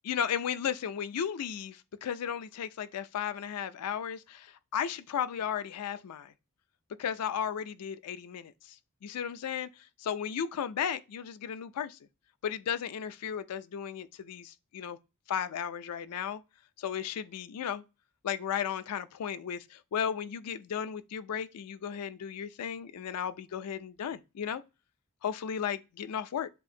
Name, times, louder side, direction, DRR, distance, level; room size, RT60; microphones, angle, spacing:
voice 1, 0.0-6.3 7.0-8.8 9.0-12.0 12.4-15.0 15.3-16.4 16.8-17.8 18.2-24.6 25.2-26.5, left 8 dB, 90° left, 0.4 m, -35 dB
7.6 x 2.5 x 2.7 m
head